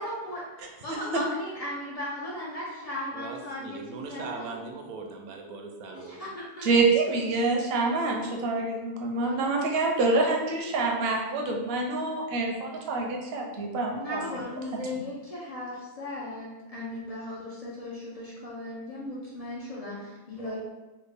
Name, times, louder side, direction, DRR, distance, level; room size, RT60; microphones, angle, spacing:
voice 1, 0.0-0.4 0.8-4.7 5.8-6.8 9.2-9.9 14.0-20.6, left 1 dB, 65° left, -6 dB, 0.3 m, -37 dB
voice 2, 3.1-6.2, right 4 dB, 80° right, 2 dB, 1.1 m, -39 dB
voice 3, 6.6-14.2, right 3 dB, 60° right, 0 dB, 0.7 m, -26 dB
3.3 x 2.2 x 3.3 m, 1.1 s
omnidirectional pair, 1.5 m